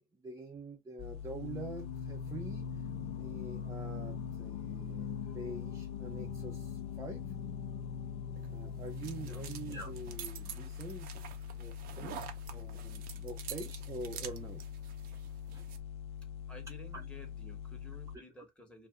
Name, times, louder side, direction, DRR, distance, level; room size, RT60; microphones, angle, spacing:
voice 1, 0.2-2.8 3.2-7.2 8.5-11.1 11.6-12.2 12.5-14.6 15.5-15.6 16.9-17.1 18.1-18.2, right 2 dB, 15° right, 0.6 m, -45 dB
sound 1, 1.0-18.2, left 8 dB, 30° left, 0.3 m, -44 dB
Singing, 1.3-10.3, left 6 dB, 60° left, 0.7 m, -43 dB
sound 2, 8.4-15.8, right 9 dB, 50° right, 0.7 m, -48 dB
voice 2, 9.2-9.5 16.5-18.9, left 1 dB, 5° left, 1.2 m, -54 dB
2.6 x 2.2 x 3.4 m
supercardioid pair, 110°, 20 cm